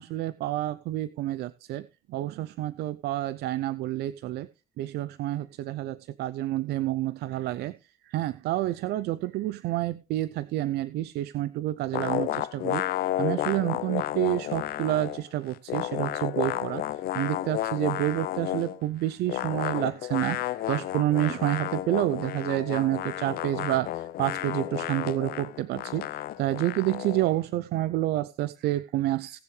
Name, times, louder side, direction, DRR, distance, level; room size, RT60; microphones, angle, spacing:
voice 1, 0.0-4.5 4.8-7.8 8.0-29.4, right 15 dB, 75° right, 0.5 m, -29 dB
sound 1, 11.9-15.2 15.5-18.8 19.3-27.3, left 14 dB, 65° left, 0.6 m, -32 dB
18.0 x 7.1 x 3.2 m
cardioid pair, 110°, 17 cm